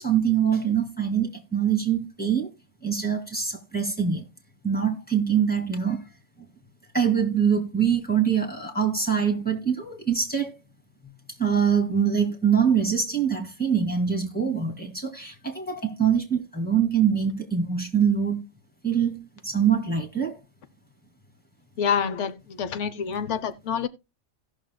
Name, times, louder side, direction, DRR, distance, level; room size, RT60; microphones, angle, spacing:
voice 1, 0.0-2.5 2.8-4.2 4.6-6.0 6.9-10.5 11.4-18.4 18.8-20.4, right 7 dB, 10° left, 1.9 m, -24 dB
voice 2, 21.8-23.9, left 7 dB, 80° left, 1.0 m, -27 dB
17.0 x 6.3 x 2.2 m
omnidirectional pair, 1.2 m